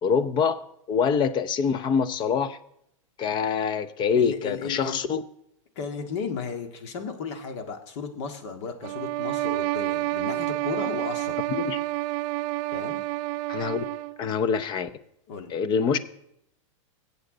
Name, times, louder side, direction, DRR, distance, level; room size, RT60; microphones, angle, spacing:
voice 1, 0.0-2.6 3.2-5.2 11.5-11.8 13.5-13.9 14.2-14.9 15.5-16.0, left 6 dB, 25° left, 14 dB, 0.7 m, -25 dB
voice 2, 4.1-5.0 5.8-11.4 12.7-13.0 15.3-15.6, left 5 dB, 55° left, 6 dB, 1.9 m, -34 dB
sound 1, 8.8-14.2, right 18 dB, 45° right, 0.4 m, -29 dB
21.0 x 8.2 x 3.9 m, 0.78 s
hypercardioid pair, 135°, 17 cm